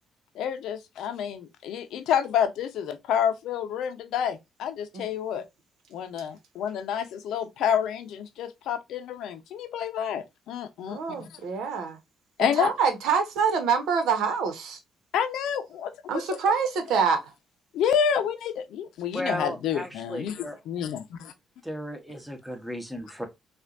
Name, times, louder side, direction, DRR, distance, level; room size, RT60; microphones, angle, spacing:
voice 1, 0.3-5.4 5.9-11.4 12.4-12.7 15.1-15.9 17.7-21.3, left 8 dB, 80° left, 0.6 m, -29 dB
voice 2, 10.9-12.0 12.4-14.8 16.1-17.3, right 6 dB, 85° right, 1.0 m, -26 dB
voice 3, 19.1-20.6 21.6-23.3, equal, ahead, 1.0 m, -35 dB
4.4 x 2.4 x 2.4 m
cardioid pair, 90°, 0 cm